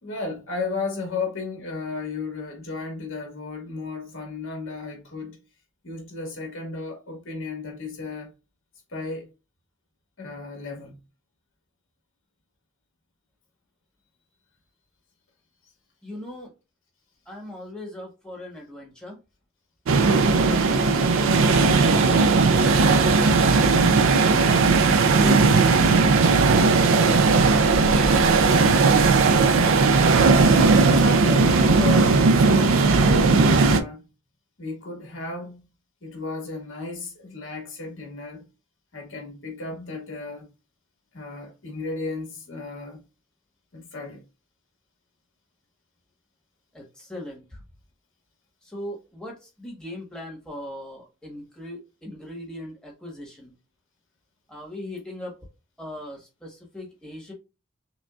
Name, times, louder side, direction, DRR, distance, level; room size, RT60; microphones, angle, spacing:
voice 1, 0.0-5.4 5.8-8.3 8.9-9.3 10.2-11.0 30.9-34.0 34.6-35.6 36.0-38.5 38.9-40.5 41.1-43.0 43.7-44.2, left 3 dB, 65° left, 1.7 m, -34 dB
voice 2, 16.0-16.5 17.3-19.2 20.2-22.3 23.3-24.1 24.4-24.7 25.0-27.1 27.4-28.4 46.7-47.6 48.6-53.5 54.5-55.3 55.8-57.3, left 1 dB, 5° left, 1.2 m, -39 dB
sound 1, 19.9-33.8, right 4 dB, 70° right, 0.4 m, -17 dB
6.0 x 2.3 x 2.4 m
head